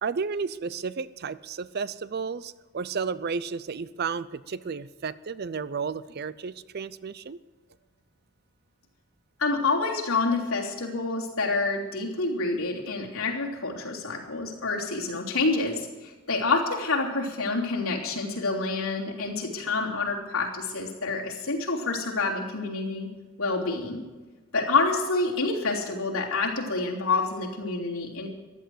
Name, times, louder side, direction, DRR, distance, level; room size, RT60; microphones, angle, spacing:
voice 1, 0.0-7.4, right 5 dB, 45° right, 17 dB, 0.5 m, -32 dB
voice 2, 9.4-23.1 23.4-24.1 24.5-28.3, left 3 dB, 70° left, -2 dB, 3.3 m, -28 dB
15.0 x 11.5 x 7.9 m, 1.2 s
head